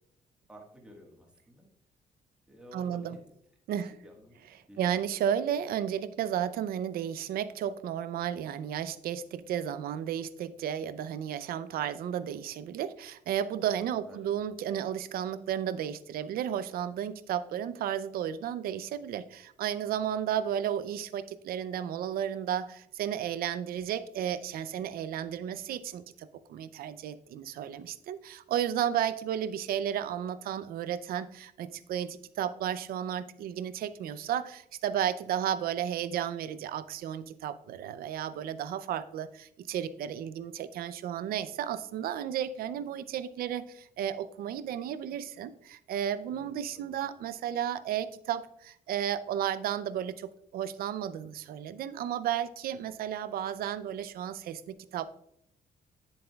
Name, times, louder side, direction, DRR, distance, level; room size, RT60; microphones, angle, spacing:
voice 1, 0.5-1.7 2.5-3.3 3.8-5.0 13.8-14.3 46.3-47.0, equal, 5° right, -1 dB, 1.4 m, -53 dB
voice 2, 2.7-3.2 3.7-3.9 4.8-55.1, right 9 dB, 75° right, 14 dB, 0.5 m, -33 dB
9.9 x 7.6 x 2.3 m, 0.74 s
cardioid pair, 175°, 15 cm